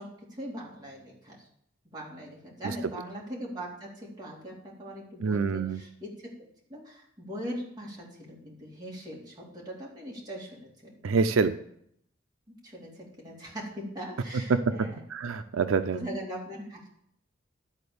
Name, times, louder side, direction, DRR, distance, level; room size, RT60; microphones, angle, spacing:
voice 1, 0.0-1.5 1.9-6.3 6.7-11.0 12.5-15.0 15.9-16.9, equal, 20° right, -4 dB, 2.5 m, -40 dB
voice 2, 5.2-5.8 11.0-11.5 14.5-14.7 15.1-16.0, right 4 dB, 85° right, 10 dB, 0.5 m, -26 dB
12.0 x 4.3 x 6.8 m, 0.70 s
head